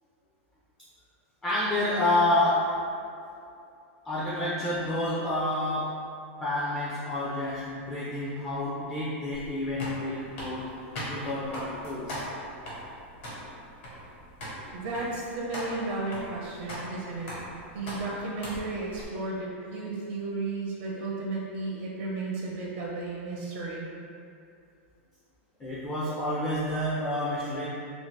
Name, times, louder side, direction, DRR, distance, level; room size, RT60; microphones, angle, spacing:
voice 1, 1.4-2.7 4.0-5.9 6.4-10.7 11.1-12.2 25.6-27.7, left 1 dB, 10° left, -8 dB, 0.3 m, -29 dB
sound 1, 9.3-19.0, equal, 65° left, 1.2 m, -40 dB
voice 2, 14.7-17.3 17.7-23.9, right 3 dB, 50° right, -4 dB, 0.5 m, -34 dB
2.6 x 2.4 x 3.2 m, 2.5 s
supercardioid pair, 160°, 7 cm